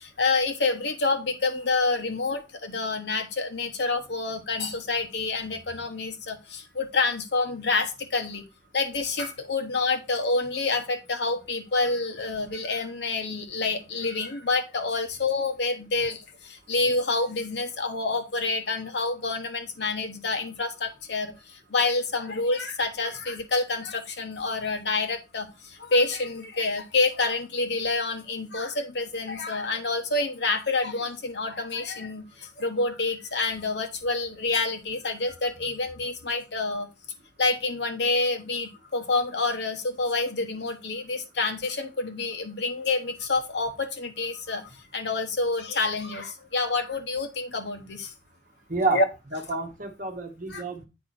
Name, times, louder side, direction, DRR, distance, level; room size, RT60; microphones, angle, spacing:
voice 1, 0.0-8.5 8.7-36.9 37.4-48.1 48.9-49.0 50.5-50.6, left 3 dB, 65° left, 6 dB, 1.2 m, -28 dB
voice 2, 48.7-49.0 49.3-50.9, right 3 dB, 45° right, 5 dB, 1.2 m, -29 dB
8.4 x 4.9 x 4.3 m, 0.27 s
head